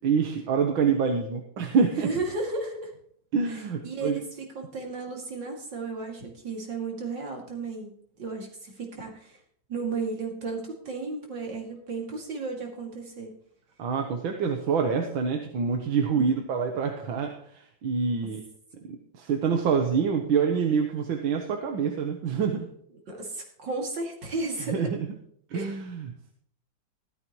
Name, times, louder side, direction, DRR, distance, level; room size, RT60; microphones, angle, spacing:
voice 1, 0.0-2.1 3.3-4.2 13.8-18.4 18.9-22.7 24.7-25.0 25.5-26.3, right 6 dB, 80° right, 4 dB, 1.8 m, -26 dB
voice 2, 2.0-2.9 3.5-9.4 9.7-13.3 16.1-16.3 23.1-24.9 25.5-25.8, right 3 dB, 60° right, 0 dB, 3.1 m, -34 dB
15.0 x 12.5 x 3.1 m, 0.64 s
omnidirectional pair, 2.2 m